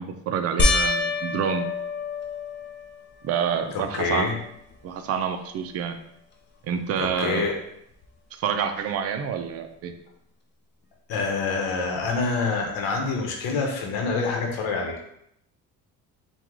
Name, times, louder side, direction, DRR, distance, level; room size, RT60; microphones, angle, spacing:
voice 1, 0.0-1.7 3.2-4.3 4.8-6.0 6.6-7.5 8.4-9.9, right 7 dB, 45° right, 7 dB, 0.4 m, -27 dB
sound 1, 0.6-3.2 3.8-4.4 4.7-4.8 8.0-8.1, left 3 dB, 30° left, 0.5 m, -26 dB
voice 2, 3.9-4.3 7.0-7.6 11.1-15.1, left 4 dB, 80° left, 1 dB, 0.9 m, -26 dB
4.5 x 2.3 x 3.6 m, 0.76 s
cardioid pair, 165°, 35 cm